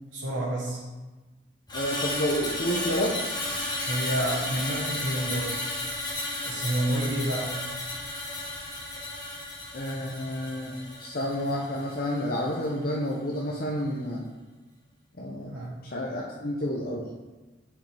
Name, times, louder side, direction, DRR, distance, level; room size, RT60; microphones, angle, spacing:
voice 1, 0.1-0.8 3.8-5.6 6.4-7.5 15.5-15.7, right 1 dB, 90° right, -5 dB, 1.1 m, -29 dB
voice 2, 1.7-3.4 9.7-10.7 11.0-14.2 15.2-15.5 15.8-17.1, equal, 50° left, -3 dB, 0.7 m, -30 dB
Screech, 1.7-12.0 12.4-12.6, left 1 dB, 25° left, 1.4 m, -33 dB
8.7 x 5.1 x 3.4 m, 1.2 s
head